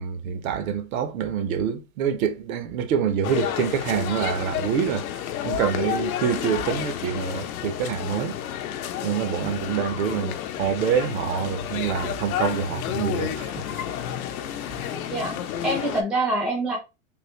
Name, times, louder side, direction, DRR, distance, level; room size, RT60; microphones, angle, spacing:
voice 1, 0.0-5.1 5.4-8.4 9.0-13.7, right 7 dB, 70° right, 0.7 m, -26 dB
sound 1, 3.2-16.0, left 10 dB, 80° left, 0.7 m, -31 dB
voice 2, 15.1-16.8, right 1 dB, ahead, 0.5 m, -25 dB
3.6 x 2.5 x 2.9 m
supercardioid pair, 160°, 43 cm